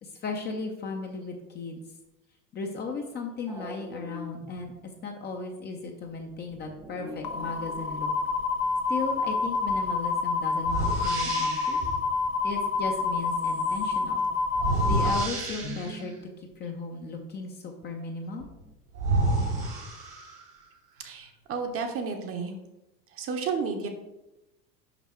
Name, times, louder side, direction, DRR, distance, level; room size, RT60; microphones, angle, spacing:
voice 1, 0.0-1.8 2.5-8.1 8.9-11.8 12.4-14.3 14.9-18.5, left 4 dB, 20° left, 3 dB, 0.7 m, -36 dB
sound 1, 3.5-4.7 6.3-8.4 12.5-12.6 12.9-14.2 14.5-14.6 14.9-15.0 15.2-16.3 18.4-18.7, equal, 5° right, 0.3 m, -45 dB
sound 2, 7.2-15.2, left 4 dB, 65° left, 0.7 m, -28 dB
sound 3, 9.7-9.8 10.6-11.9 14.5-16.1 18.4-18.5 18.9-20.6, right 2 dB, 70° right, 2.2 m, -29 dB
voice 2, 21.0-22.5 23.1-23.9, right 5 dB, 30° right, 4 dB, 1.0 m, -32 dB
6.0 x 5.6 x 4.4 m, 0.96 s
figure-of-eight pair, 80°, 49 cm